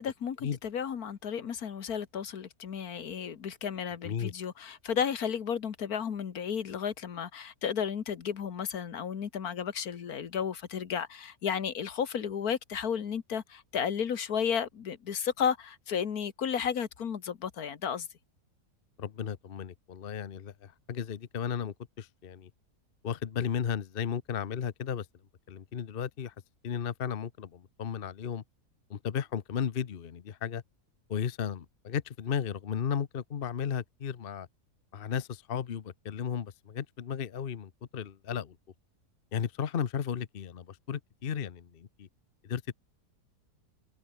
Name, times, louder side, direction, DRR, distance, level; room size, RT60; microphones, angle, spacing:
voice 1, 0.0-18.1, left 7 dB, 65° left, 1.8 m, -33 dB
voice 2, 19.0-22.5 23.0-25.1 25.5-26.3 26.6-28.4 28.9-30.6 31.1-34.5 34.9-38.5 39.3-42.1 42.5-42.7, left 8 dB, 45° left, 0.9 m, -34 dB
omnidirectional pair, 1.7 m